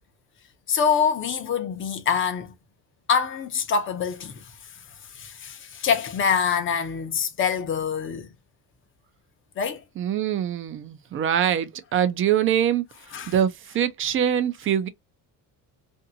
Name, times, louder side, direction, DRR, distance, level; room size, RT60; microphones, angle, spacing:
voice 1, 0.7-2.5 3.1-8.3 9.6-9.8 13.1-13.3, left 6 dB, 35° left, 0.7 m, -25 dB
voice 2, 10.0-12.8 13.3-14.9, right 9 dB, 35° right, 0.5 m, -23 dB
2.6 x 2.6 x 2.6 m
cardioid pair, 150°, 36 cm